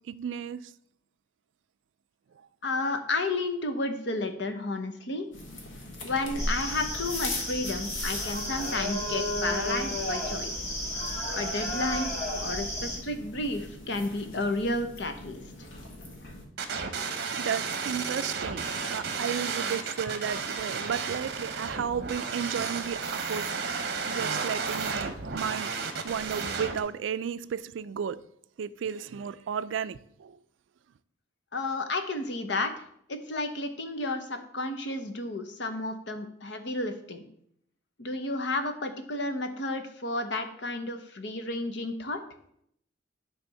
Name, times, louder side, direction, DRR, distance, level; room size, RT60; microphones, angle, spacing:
voice 1, 0.1-0.7 17.4-23.6 24.1-25.7 26.0-28.2 28.6-30.4, right 7 dB, 75° right, 0.3 m, -33 dB
voice 2, 2.6-5.3 6.0-10.7 11.3-12.1 12.4-15.4 31.5-32.8 33.1-37.2 38.0-42.2, left 2 dB, 65° left, 0.9 m, -32 dB
sound 1, 5.3-16.4, left 1 dB, 80° left, 1.5 m, -40 dB
sound 2, 6.4-13.0, left 1 dB, 35° left, 1.9 m, -33 dB
sound 3, 16.6-26.8, right 5 dB, 55° right, 0.9 m, -33 dB
9.7 x 3.5 x 5.5 m
head